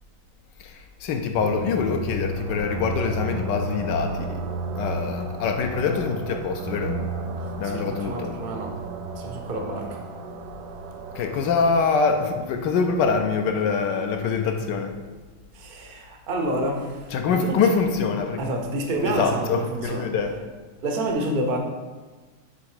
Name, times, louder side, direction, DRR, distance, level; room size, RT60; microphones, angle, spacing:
voice 1, 0.6-4.4 4.7-7.0 7.6-8.3 11.1-14.9 17.1-18.4 19.0-20.4, left 5 dB, 70° left, 5 dB, 1.2 m, -24 dB
sound 1, 1.4-12.5, right 2 dB, 80° right, 1.4 m, -33 dB
voice 2, 7.4-8.8 9.2-10.0 15.5-17.7 18.4-20.1 20.8-21.6, right 1 dB, 55° right, 2 dB, 0.5 m, -29 dB
7.6 x 3.5 x 4.8 m, 1.3 s
omnidirectional pair, 2.2 m